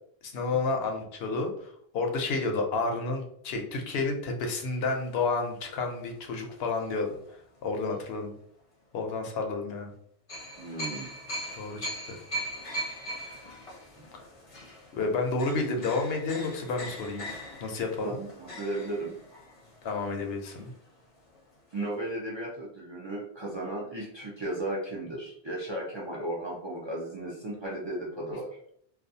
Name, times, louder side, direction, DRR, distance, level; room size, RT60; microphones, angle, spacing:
voice 1, 0.2-7.2 7.6-8.3 8.9-9.9 11.6-12.2 13.2-13.3 14.9-17.2 17.6-18.2 19.8-20.7, left 3 dB, 75° left, 3 dB, 0.8 m, -30 dB
sound 1, 4.9-7.3 7.9-8.1 10.3-21.1 21.3-21.4 21.7-21.9, right 1 dB, 40° left, 0.6 m, -41 dB
voice 2, 10.6-11.1 18.0-19.1 21.7-28.5, right 1 dB, 40° right, -4 dB, 0.4 m, -35 dB
2.4 x 2.3 x 2.6 m, 0.66 s
omnidirectional pair, 1.0 m